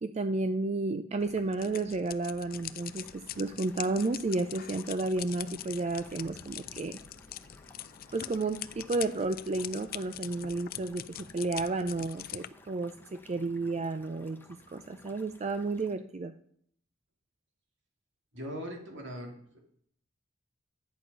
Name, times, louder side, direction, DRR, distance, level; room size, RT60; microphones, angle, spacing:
voice 1, 0.0-7.0 8.1-14.4 14.7-16.3, right 3 dB, 35° right, 10 dB, 0.4 m, -32 dB
sound 1, 1.2-12.5, left 12 dB, 45° left, 0.4 m, -43 dB
sound 2, 2.5-15.9, left 2 dB, 10° left, 0.9 m, -57 dB
voice 2, 18.3-19.6, equal, 60° right, 2 dB, 2.6 m, -40 dB
11.0 x 8.4 x 5.4 m, 0.65 s
head